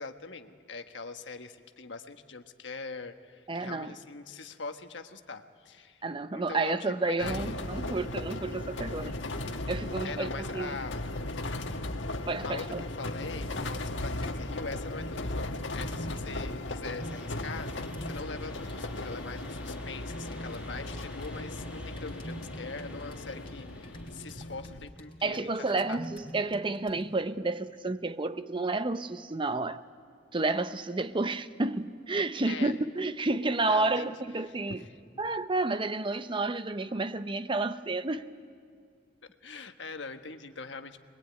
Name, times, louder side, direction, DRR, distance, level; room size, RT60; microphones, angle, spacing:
voice 1, 0.0-6.1 6.3-7.6 10.0-11.0 12.4-26.0 32.4-32.8 33.6-34.1 34.5-34.9 39.4-41.0, left 4 dB, 70° left, 1.4 m, -42 dB
voice 2, 3.5-3.9 6.0-9.2 9.7-10.8 12.3-12.8 25.2-29.8 30.3-34.8 35.2-38.3, right 3 dB, 25° right, 0.7 m, -30 dB
sound 1, 7.2-24.9, left 2 dB, 90° left, 1.5 m, -37 dB
sound 2, 12.7-14.4 14.9-16.5 16.9-18.4 18.7-27.2, right 1 dB, 30° left, 2.8 m, -47 dB
sound 3, 17.0-24.2, equal, 5° right, 2.4 m, -52 dB
25.0 x 21.0 x 9.5 m
head